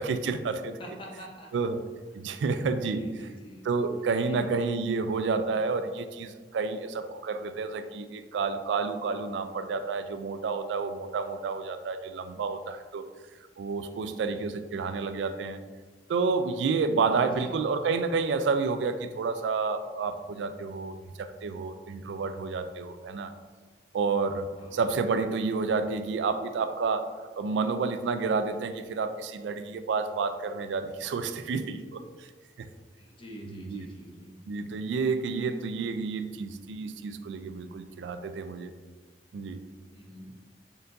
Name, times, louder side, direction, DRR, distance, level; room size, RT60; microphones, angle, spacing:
voice 1, 0.0-0.7 1.5-1.8 2.1-3.1 3.6-13.0 13.6-15.6 16.1-23.3 23.9-27.1 27.4-32.3 32.6-32.7 33.5-33.9 34.5-38.7 39.3-39.6, right 4 dB, 90° right, 9 dB, 0.3 m, -30 dB
voice 2, 0.8-1.5 2.2-3.6 4.2-4.4 14.1-14.4 16.9-17.5 24.6-24.8 33.0-34.3 35.2-35.3 39.9-40.3, equal, 30° left, -1 dB, 0.8 m, -46 dB
4.4 x 3.9 x 2.5 m, 1.4 s
head